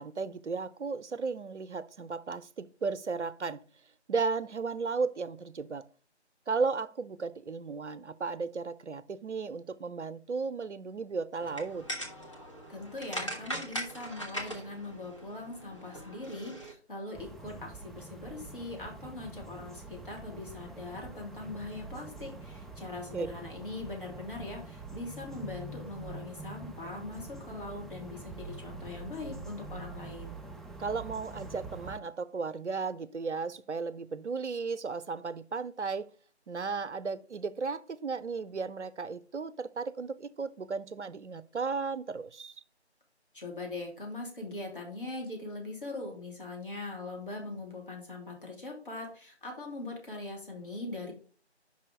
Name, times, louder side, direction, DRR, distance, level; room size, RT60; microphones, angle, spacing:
voice 1, 0.0-3.6 4.1-5.8 6.5-11.8 23.1-23.3 30.8-36.1 36.5-42.6, right 4 dB, 90° right, 0.6 m, -35 dB
sound 1, 11.4-16.7, equal, 30° left, 1.0 m, -40 dB
voice 2, 12.7-30.4 43.3-51.1, left 2 dB, 50° left, 2.8 m, -41 dB
sound 2, 17.1-32.0, right 3 dB, ahead, 0.3 m, -45 dB
5.4 x 4.8 x 5.1 m
figure-of-eight pair, 170°, 34 cm